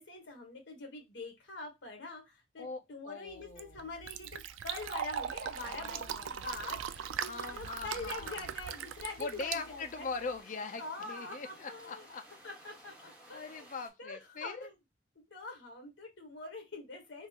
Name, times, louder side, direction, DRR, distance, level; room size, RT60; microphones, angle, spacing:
voice 1, 0.0-10.1 10.8-12.1 12.4-13.7 14.0-14.8 15.2-17.3, left 2 dB, 75° left, 1.2 m, -44 dB
voice 2, 2.6-3.8 5.6-6.5 7.2-8.4 9.2-12.2 13.3-14.7, left 4 dB, 40° left, 0.4 m, -42 dB
Fill (with liquid), 3.3-10.4, right 8 dB, 85° right, 0.3 m, -40 dB
sound 1, 6.4-13.9, right 1 dB, 5° right, 1.2 m, -56 dB
3.7 x 2.4 x 2.8 m
head